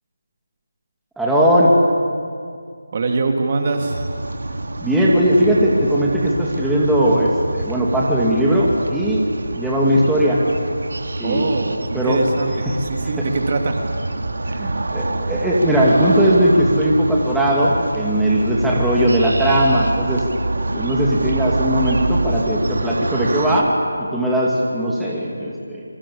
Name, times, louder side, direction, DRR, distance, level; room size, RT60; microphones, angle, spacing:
voice 1, 1.2-1.7 4.8-9.3 9.5-10.4 11.2-11.4 11.9-12.2 12.7-12.8 13.2-13.3 14.5-20.2 20.7-23.7 24.0-25.8, equal, 5° right, -6 dB, 2.6 m, -18 dB
voice 2, 2.9-4.0 11.2-14.0, right 3 dB, 35° right, 3 dB, 2.7 m, -23 dB
sound 1, 3.8-23.6, right 2 dB, 70° right, 2.5 m, -26 dB
26.5 x 24.5 x 8.7 m, 2.2 s
figure-of-eight pair, 165°, 0 cm